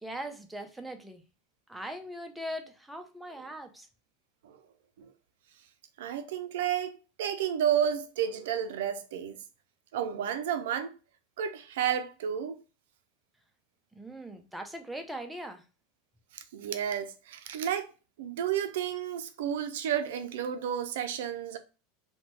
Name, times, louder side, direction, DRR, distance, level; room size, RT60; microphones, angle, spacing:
voice 1, 0.0-1.2 1.7-3.9 14.0-15.6, equal, 5° right, 0.5 m, -40 dB
voice 2, 6.0-9.4 9.9-10.9 11.4-12.6 16.3-17.9 18.2-21.6, right 9 dB, 75° right, 0.4 m, -31 dB
2.8 x 2.2 x 2.9 m
supercardioid pair, 110°, 0 cm